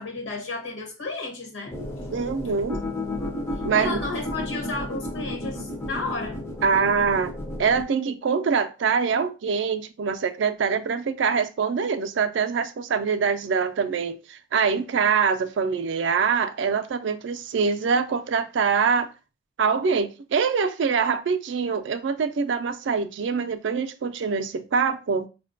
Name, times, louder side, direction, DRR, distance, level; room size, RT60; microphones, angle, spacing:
voice 1, 0.0-1.8 3.7-6.4, left 3 dB, 65° left, 1.1 m, -33 dB
sound 1, 1.7-7.8, left 1 dB, 15° left, 0.4 m, -32 dB
voice 2, 2.1-2.8 3.7-4.0 6.6-7.3 7.6-19.1 19.6-25.3, right 5 dB, 60° right, 0.4 m, -24 dB
4.9 x 2.2 x 2.5 m
head